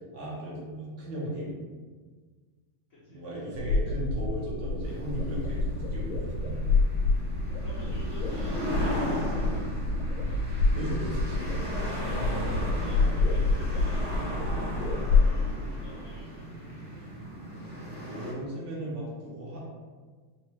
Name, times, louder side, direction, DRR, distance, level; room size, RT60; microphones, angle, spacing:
voice 1, 0.1-1.6 3.1-6.7 10.7-11.5 18.0-19.6, equal, 65° right, -6 dB, 1.7 m, -36 dB
voice 2, 2.9-3.7 7.6-9.9 12.0-14.7 15.2-17.1, left 1 dB, 55° left, -9 dB, 1.0 m, -50 dB
sound 1, 3.5-15.3, left 3 dB, 85° left, 1.4 m, -27 dB
sound 2, 4.8-18.3, equal, 80° right, 2.1 m, -36 dB
4.8 x 2.5 x 3.0 m, 1.5 s
omnidirectional pair, 2.2 m